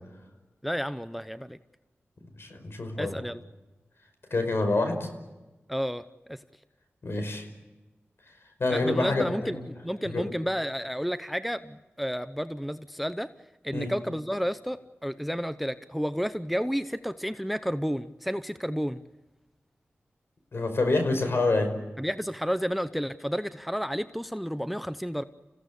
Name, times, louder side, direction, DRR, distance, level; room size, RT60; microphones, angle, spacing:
voice 1, 0.6-1.6 3.0-3.4 5.7-6.4 8.7-13.3 13.6-19.0 22.0-25.2, equal, ahead, 12 dB, 0.7 m, -31 dB
voice 2, 2.4-3.2 4.3-5.1 7.0-7.5 8.6-9.6 10.1-10.2 13.7-13.9 20.5-21.7, left 2 dB, 60° left, 6 dB, 5.3 m, -27 dB
29.0 x 16.5 x 8.3 m, 1.1 s
wide cardioid pair, 65°, 5 cm